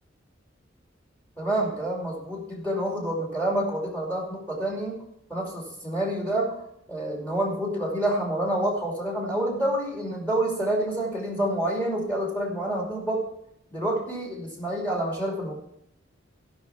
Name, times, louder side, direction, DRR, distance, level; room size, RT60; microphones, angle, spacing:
voice 1, 1.4-5.0 5.3-6.6 6.9-13.2 13.7-15.5, right 1 dB, 10° left, -1 dB, 2.6 m, -28 dB
16.5 x 5.7 x 5.7 m, 0.76 s
head